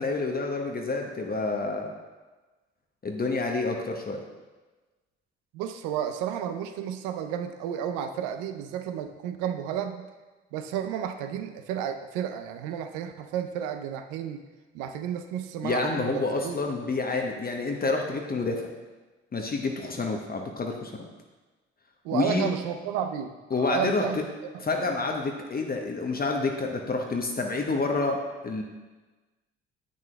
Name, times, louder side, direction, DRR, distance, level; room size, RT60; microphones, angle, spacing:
voice 1, 0.0-1.9 3.0-4.2 15.6-18.6 19.3-20.9 22.1-22.5 23.5-24.0 24.6-28.2 28.4-28.6, left 3 dB, 30° left, 2 dB, 0.9 m, -28 dB
voice 2, 5.5-10.1 10.5-14.4 14.7-16.6 22.0-24.2, right 9 dB, 70° right, 7 dB, 0.6 m, -32 dB
8.7 x 6.2 x 2.2 m, 1.2 s
hypercardioid pair, 45°, 33 cm